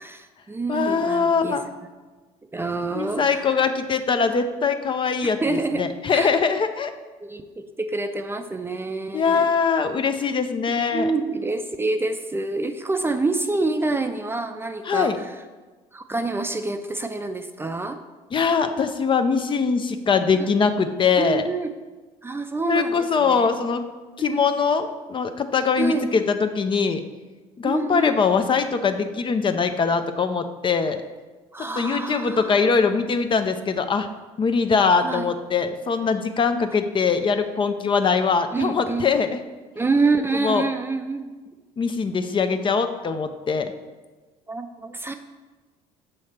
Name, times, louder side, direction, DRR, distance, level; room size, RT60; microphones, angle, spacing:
voice 1, 0.0-1.6 2.5-3.6 5.4-6.3 7.2-9.5 10.9-15.3 15.9-18.0 20.4-20.5 21.2-21.7 22.2-23.5 24.2-24.4 25.8-26.1 27.6-28.2 31.5-32.5 35.0-35.3 38.5-39.1 39.8-41.3 44.5-45.1, right 3 dB, 15° right, 7 dB, 0.4 m, -27 dB
voice 2, 0.7-1.7 2.9-5.4 5.8-6.9 9.1-11.1 14.8-15.2 18.3-21.4 22.7-23.8 24.2-27.0 27.6-31.0 31.8-34.1 34.4-39.4 40.4-40.6 41.8-43.7, left 5 dB, 35° left, 8 dB, 0.5 m, -22 dB
6.3 x 3.1 x 5.8 m, 1.3 s
supercardioid pair, 80°, 14 cm